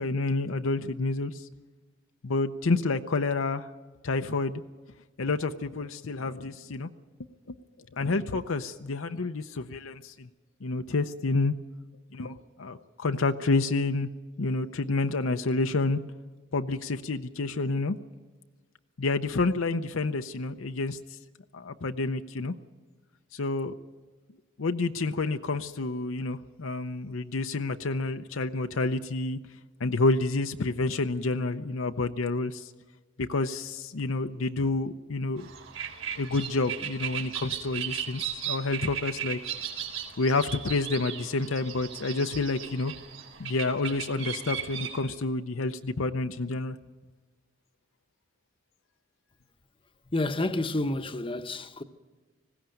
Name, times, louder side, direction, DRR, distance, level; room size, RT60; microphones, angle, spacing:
voice 1, 0.0-1.5 2.2-3.7 4.0-4.6 5.2-6.9 7.9-10.3 10.6-11.5 12.1-14.1 14.4-16.0 16.5-18.0 19.0-21.0 21.5-22.5 23.3-23.7 24.6-29.4 29.8-32.7 33.2-35.5 36.2-39.4 40.2-42.9 43.4-46.8, left 3 dB, 70° left, 0.7 m, -29 dB
sound 1, 35.4-45.0, right 8 dB, 70° right, 3.9 m, -36 dB
voice 2, 50.1-51.8, left 2 dB, 25° left, 0.9 m, -29 dB
20.0 x 16.0 x 9.1 m
head